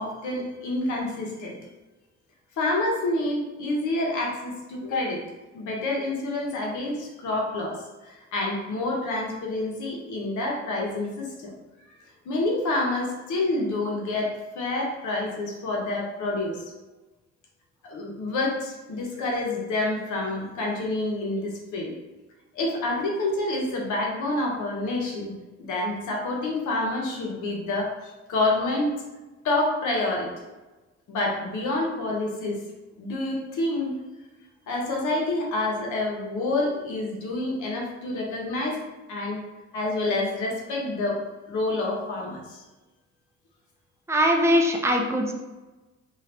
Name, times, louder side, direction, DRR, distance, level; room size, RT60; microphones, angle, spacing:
voice 1, 0.0-1.6 2.6-5.2 5.5-11.5 12.2-16.6 17.8-21.9 22.5-25.3 25.6-28.9 29.4-30.3 31.1-32.6 33.0-33.9 34.7-38.8 39.1-39.4 39.7-41.2 41.5-42.6 44.5-44.6, left 2 dB, 80° left, -1 dB, 0.8 m, -28 dB
voice 2, 44.1-45.3, equal, 10° right, 2 dB, 0.4 m, -21 dB
2.7 x 2.4 x 3.2 m, 1.1 s
cardioid pair, 90°, 30 cm